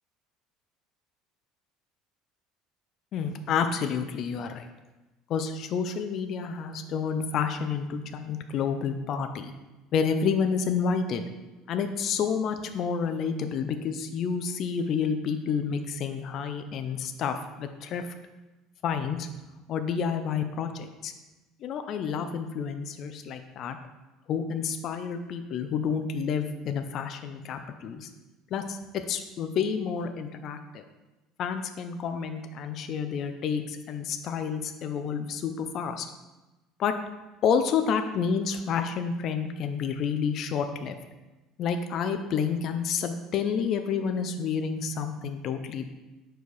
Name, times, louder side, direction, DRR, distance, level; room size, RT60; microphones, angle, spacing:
voice 1, 3.1-4.7 5.3-9.5 9.9-11.3 11.7-18.1 18.8-19.3 19.7-21.1 21.6-23.8 24.3-28.1 28.5-30.8 31.4-36.1 36.8-36.9 37.4-41.0 41.6-45.9, left 6 dB, 35° left, 7 dB, 0.4 m, -29 dB
5.3 x 4.5 x 4.7 m, 1.1 s
cardioid pair, 175°, 0 cm